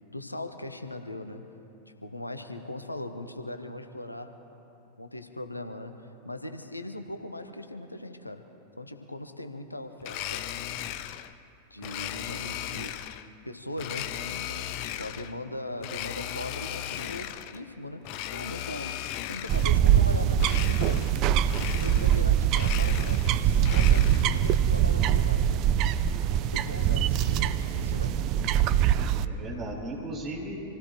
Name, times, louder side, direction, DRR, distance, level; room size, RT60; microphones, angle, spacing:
voice 1, 0.1-1.4 2.0-4.4 5.0-5.9 6.2-8.4 8.8-10.4 11.7-13.0 13.4-18.1 18.3-18.9 19.3-21.1 21.6-25.5 26.5-28.2, left 1 dB, 85° left, 7 dB, 1.0 m, -39 dB
Domestic sounds home sounds, 10.0-11.3 11.8-13.3 13.8-15.3 15.8-17.6 18.0-19.8 20.4-21.2 21.5-22.2 22.5-24.4, left 12 dB, 45° left, 0.6 m, -36 dB
sound 1, 19.5-29.3, right 10 dB, 40° right, 0.5 m, -23 dB
voice 2, 26.6-27.1 29.0-30.5, right 2 dB, 25° right, -3 dB, 4.5 m, -38 dB
26.5 x 16.5 x 3.1 m, 2.8 s
figure-of-eight pair, 90°, 0 cm